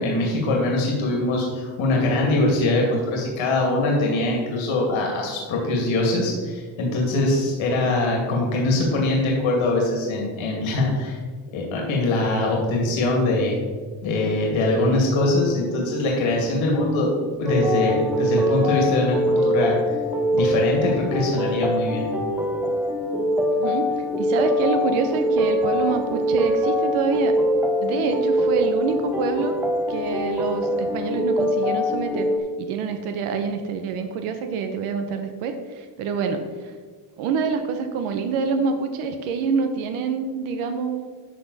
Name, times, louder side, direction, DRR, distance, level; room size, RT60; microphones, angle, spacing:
voice 1, 0.0-11.2 11.5-13.6 14.0-17.1 17.4-19.8 20.3-22.1, left 2 dB, 70° left, -1 dB, 2.4 m, -22 dB
sound 1, 17.5-32.4, equal, 5° right, 0.5 m, -23 dB
voice 2, 23.5-27.4 27.8-29.5 29.9-32.3 32.6-36.7 37.2-41.1, right 5 dB, 85° right, 6 dB, 1.0 m, -26 dB
11.5 x 6.0 x 4.1 m, 1.5 s
cardioid pair, 155°, 48 cm